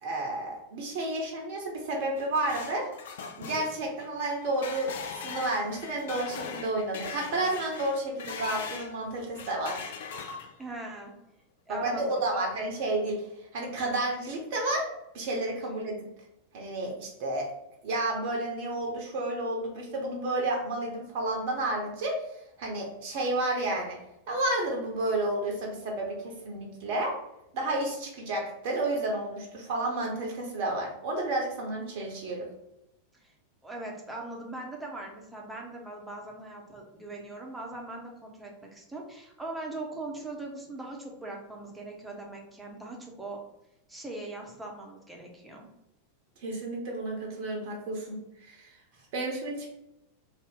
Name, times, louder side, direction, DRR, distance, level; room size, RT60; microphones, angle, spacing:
voice 1, 0.0-2.9 3.4-9.8 11.7-14.9 15.1-16.1 16.5-17.5 17.8-22.2 22.6-24.0 24.3-27.2 27.5-32.5 46.4-48.7 49.1-49.7, right 2 dB, 50° right, 0 dB, 0.6 m, -31 dB
sound 1, 1.9-8.9 9.3-10.8, left 6 dB, 55° left, 0.3 m, -40 dB
voice 2, 10.6-11.1 11.7-12.5 33.2-33.3 33.6-43.4 43.9-45.7, right 2 dB, 5° right, -1 dB, 0.7 m, -40 dB
2.6 x 2.1 x 3.5 m, 0.88 s
figure-of-eight pair, 90°, 0 cm